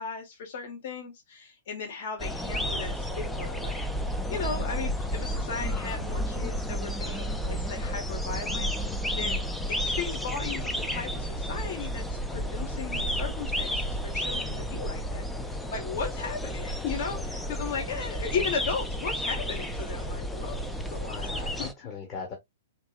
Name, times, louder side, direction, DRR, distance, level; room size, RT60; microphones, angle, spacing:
voice 1, 0.0-3.8 4.3-8.7 9.1-9.4 9.7-21.7, left 5 dB, 50° left, 1.4 m, -36 dB
sound 1, 2.2-21.7, equal, 5° left, 0.5 m, -32 dB
voice 2, 21.1-22.3, left 5 dB, 30° left, 1.3 m, -39 dB
4.6 x 2.9 x 2.4 m
figure-of-eight pair, 105°, 0 cm